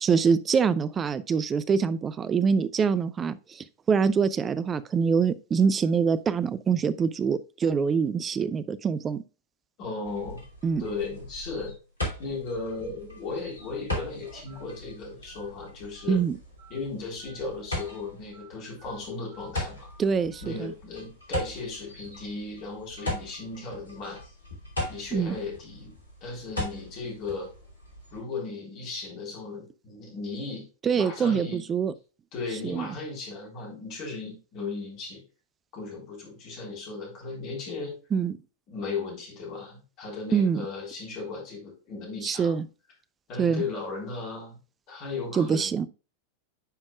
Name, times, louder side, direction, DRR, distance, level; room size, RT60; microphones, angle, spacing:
voice 1, 0.0-9.2 10.6-10.8 16.1-16.4 20.0-20.7 25.1-25.4 30.8-31.9 32.6-32.9 38.1-38.3 40.3-40.6 42.2-42.7 43.4-43.6 45.3-45.9, right 6 dB, 20° right, 0.4 m, -25 dB
voice 2, 9.8-10.4 10.8-11.7 12.2-16.2 16.7-19.9 20.4-24.2 24.9-27.5 28.1-30.7 31.0-31.9 32.3-35.2 35.7-37.9 38.7-42.5 43.3-44.6 44.9-45.7, left 3 dB, 40° left, 3.7 m, -36 dB
sound 1, 10.0-28.2, left 1 dB, 75° left, 2.6 m, -39 dB
Telephone, 13.6-13.7 14.5-14.6 15.3-15.4 15.9-16.2 16.6-16.8 17.2-17.4 17.8-18.0 18.3-18.5 18.8-19.0 19.3-19.5 19.8-20.0 20.3-20.5, right 6 dB, 70° right, 1.9 m, -54 dB
10.0 x 5.3 x 2.3 m
figure-of-eight pair, 90°, 0 cm